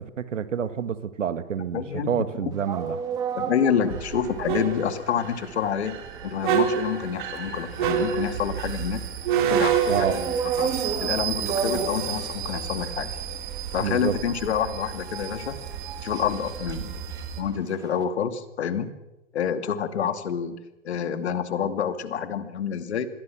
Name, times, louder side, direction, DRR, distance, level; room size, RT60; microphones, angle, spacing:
voice 1, 0.0-3.0 9.9-10.2 13.8-14.2, right 8 dB, 75° right, 12 dB, 1.9 m, -28 dB
voice 2, 1.7-2.1 2.4-2.5 3.4-6.0 6.2-9.0 9.5-10.2 10.6-10.7 11.0-13.1 13.7-15.6 16.0-17.0 17.4-18.9 19.3-20.6 20.8-23.1, left 8 dB, 60° left, 9 dB, 2.5 m, -28 dB
sound 1, 2.5-18.0, right 6 dB, 10° right, 1.2 m, -35 dB
sound 2, 3.9-17.4, right 8 dB, 40° right, 3.5 m, -29 dB
27.5 x 21.5 x 6.2 m, 0.96 s
hypercardioid pair, 165°, 38 cm